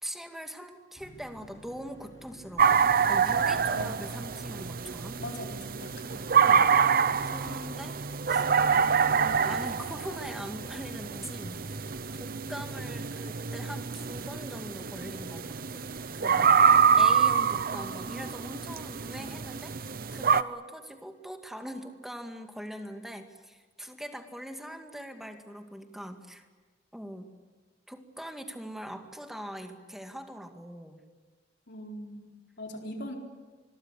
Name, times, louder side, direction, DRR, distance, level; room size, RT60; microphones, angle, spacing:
voice 1, 0.0-5.2 6.4-6.7 7.2-8.0 8.3-8.4 9.1-11.9 12.2-15.9 16.1-26.4 26.9-27.3 27.9-31.0, equal, ahead, 5 dB, 2.1 m, -42 dB
sound 1, 1.0-10.1, equal, 20° left, 7.1 m, -55 dB
sound 2, 2.6-20.4, right 6 dB, 50° right, 0.8 m, -26 dB
voice 2, 3.7-4.1 5.2-6.5 31.7-33.2, equal, 65° left, 1 dB, 4.3 m, -41 dB
26.5 x 22.0 x 8.3 m, 1.4 s
head